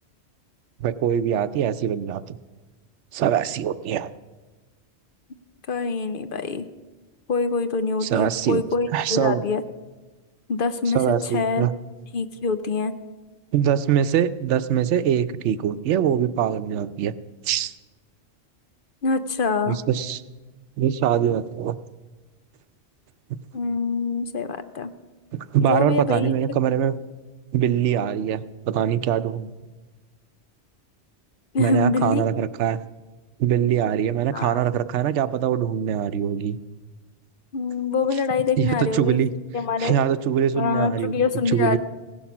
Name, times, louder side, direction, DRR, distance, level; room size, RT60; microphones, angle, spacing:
voice 1, 0.8-2.4 3.1-4.1 8.0-8.6 8.9-9.4 10.9-11.7 13.5-17.1 17.4-17.7 19.7-20.2 20.8-21.7 25.3-26.9 27.5-29.5 31.6-32.8 33.4-36.6 38.6-39.3 39.8-41.2 41.5-41.8, right 9 dB, 90° right, 14 dB, 0.9 m, -23 dB
voice 2, 5.7-6.7 7.3-9.6 10.5-11.0 11.3-11.7 12.1-12.9 19.0-19.8 23.5-24.9 25.6-26.3 31.5-32.2 34.3-34.6 37.5-39.2 39.5-39.9 40.5-41.8, left 4 dB, 55° left, 11 dB, 0.8 m, -24 dB
16.5 x 11.5 x 6.0 m, 1.2 s
omnidirectional pair, 1.2 m